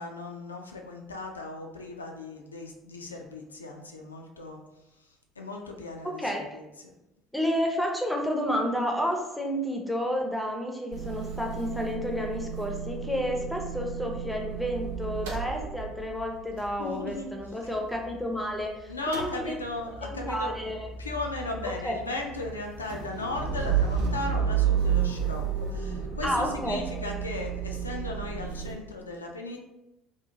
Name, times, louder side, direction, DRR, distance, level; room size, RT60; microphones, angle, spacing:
voice 1, 0.0-4.6 5.0-6.9 16.8-17.3 18.9-20.5 21.0-29.6, left 2 dB, 85° left, 1 dB, 0.3 m, -37 dB
voice 2, 7.3-19.6 20.0-20.9 21.8-22.0 26.2-26.8, equal, 5° left, 1 dB, 0.6 m, -30 dB
Motor vehicle (road) / Engine starting / Idling, 10.9-18.6 18.9-28.7, right 7 dB, 70° right, 0.5 m, -32 dB
2.8 x 2.3 x 2.7 m, 0.93 s
figure-of-eight pair, 60°, 0 cm